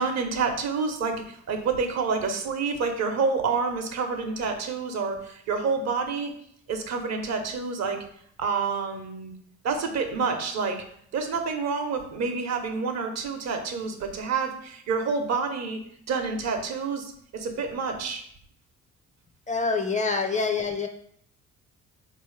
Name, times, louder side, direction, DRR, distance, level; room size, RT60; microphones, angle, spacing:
voice 1, 0.0-6.3 6.7-8.0 8.4-9.3 9.6-10.8 11.1-15.8 16.1-18.2, right 5 dB, 60° right, 5 dB, 0.8 m, -28 dB
voice 2, 19.5-20.9, left 4 dB, 25° left, 4 dB, 0.4 m, -26 dB
4.1 x 2.7 x 3.2 m, 0.65 s
cardioid pair, 90°, 30 cm